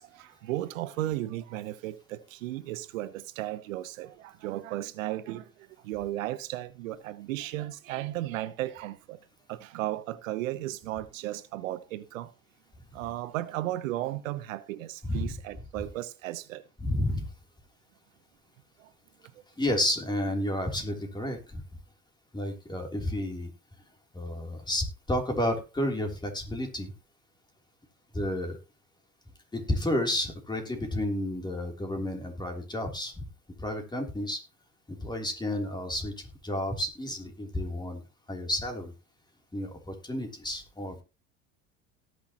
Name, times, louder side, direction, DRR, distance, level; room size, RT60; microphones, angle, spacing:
voice 1, 0.0-9.2 9.5-12.3 12.9-16.6 18.8-18.9, right 15 dB, 85° right, 0.9 m, -35 dB
voice 2, 16.8-17.3 19.6-21.6 22.3-23.5 24.1-26.9 28.1-28.6 29.5-33.2 33.6-34.4 34.9-38.0 38.3-38.9 39.5-41.0, left 1 dB, 10° left, 3.2 m, -31 dB
18.0 x 6.5 x 3.0 m
supercardioid pair, 95°, 38 cm